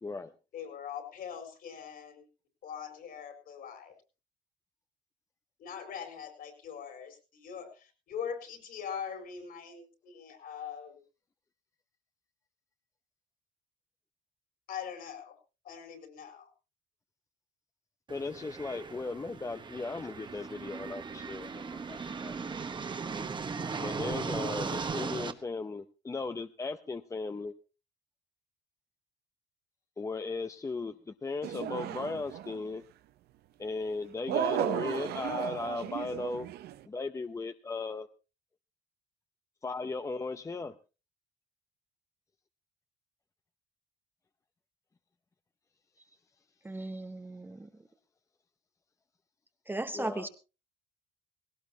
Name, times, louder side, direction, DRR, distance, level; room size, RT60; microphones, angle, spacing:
voice 1, 0.0-0.3 18.1-22.0 22.2-22.6 23.8-27.5 30.0-32.8 33.6-36.5 36.9-38.1 39.6-40.7 49.9-50.3, left 3 dB, 20° left, 10 dB, 0.7 m, -37 dB
voice 2, 0.5-2.3 2.6-4.0 5.6-11.0 14.7-15.4 15.6-16.5, left 7 dB, 60° left, 6 dB, 4.4 m, -42 dB
sound 1, 18.1-25.3, right 5 dB, 30° right, 1.2 m, -37 dB
sound 2, 31.4-32.6 34.3-36.8, right 11 dB, 70° right, 0.8 m, -34 dB
voice 3, 46.6-47.7 49.7-50.3, right 2 dB, 10° right, 9 dB, 0.9 m, -36 dB
18.0 x 17.5 x 2.8 m, 0.31 s
cardioid pair, 110°, 17 cm